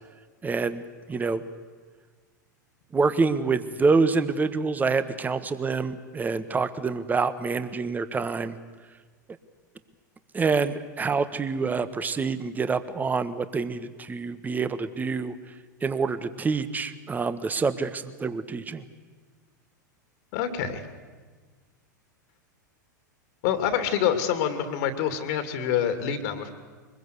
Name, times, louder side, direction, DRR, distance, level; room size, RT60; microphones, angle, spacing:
voice 1, 0.4-1.4 2.9-8.6 10.3-15.3 15.8-18.8, right 4 dB, 15° right, 12 dB, 1.4 m, -26 dB
voice 2, 20.3-20.8 23.4-26.5, left 9 dB, 55° left, 9 dB, 2.6 m, -26 dB
24.0 x 21.5 x 8.3 m, 1.4 s
hypercardioid pair, 95°, 10 cm